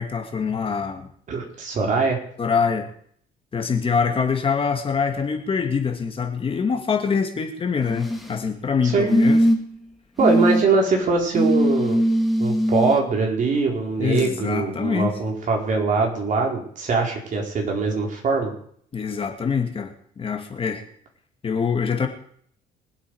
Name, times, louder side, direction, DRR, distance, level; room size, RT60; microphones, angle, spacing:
voice 1, 0.0-1.1 2.4-2.9 3.5-9.4 14.0-15.1 18.9-20.8 21.4-22.1, left 6 dB, 35° left, 4 dB, 2.3 m, -24 dB
voice 2, 1.3-2.2 8.8-9.2 10.2-12.0 12.4-18.5, right 4 dB, 50° right, 1 dB, 4.4 m, -22 dB
sound 1, 7.8-8.4 9.1-9.8 10.2-10.6 11.3-12.9 14.2-14.3, equal, ahead, 2.5 m, -20 dB
23.5 x 8.4 x 4.9 m, 0.62 s
cardioid pair, 110°, 17 cm